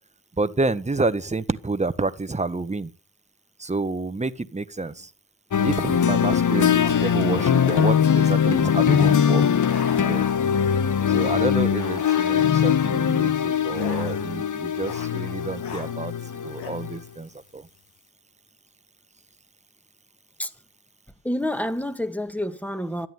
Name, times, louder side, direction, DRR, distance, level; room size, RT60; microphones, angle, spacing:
voice 1, 0.4-2.9 3.6-5.1 5.6-9.5 10.0-10.2 11.1-16.1 16.4-17.7, right 3 dB, 15° right, 1.5 m, -29 dB
sound 1, 4.9-5.0 6.8-7.1 7.5-8.2 8.9-9.2 9.5-10.6 11.1-11.4 11.7-12.7 13.7-14.4 14.7-15.2 15.4-15.9 16.5-16.7, left 6 dB, 80° left, 3.7 m, -38 dB
sound 2, 5.5-17.0, left 8 dB, 50° left, 1.4 m, -21 dB
voice 2, 21.2-23.1, left 1 dB, 5° left, 2.2 m, -28 dB
13.0 x 11.0 x 9.4 m
hypercardioid pair, 45°, 40 cm